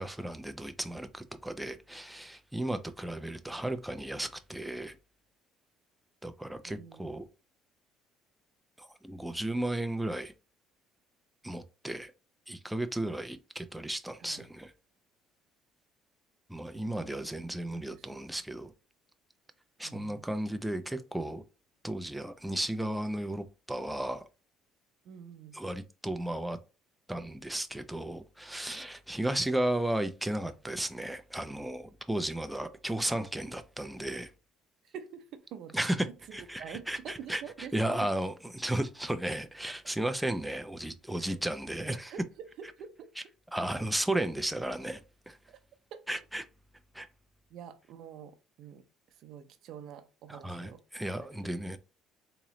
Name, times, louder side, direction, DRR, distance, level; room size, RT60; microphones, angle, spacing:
voice 1, 0.0-5.0 6.2-7.3 8.8-10.3 11.4-12.1 12.5-14.7 16.5-18.7 19.8-21.4 21.8-24.2 25.5-26.6 27.1-34.3 35.7-37.4 37.7-42.1 43.5-45.0 45.3-45.4 46.1-46.4 46.9-47.1 50.3-51.8, right 1 dB, 5° right, 0.3 m, -34 dB
voice 2, 6.6-7.0 14.2-14.5 16.7-18.2 19.8-20.2 25.0-25.6 34.8-35.8 36.0-38.1 41.2-41.4 42.1-43.1 45.5-45.6 45.9-46.0 47.5-50.8, right 8 dB, 55° right, 0.6 m, -47 dB
3.6 x 3.0 x 3.0 m
cardioid pair, 155°, 0 cm